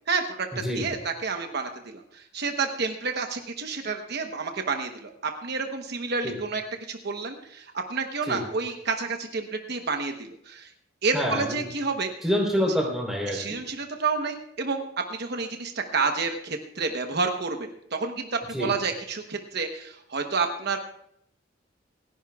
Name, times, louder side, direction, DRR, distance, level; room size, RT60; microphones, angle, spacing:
voice 1, 0.1-6.6 6.9-10.7 11.0-12.1 13.3-14.8 15.1-20.8, right 4 dB, 60° right, 5 dB, 1.0 m, -29 dB
voice 2, 11.1-11.5 12.2-13.6 18.5-18.7, equal, ahead, -1 dB, 3.6 m, -26 dB
27.5 x 11.0 x 2.4 m, 0.72 s
head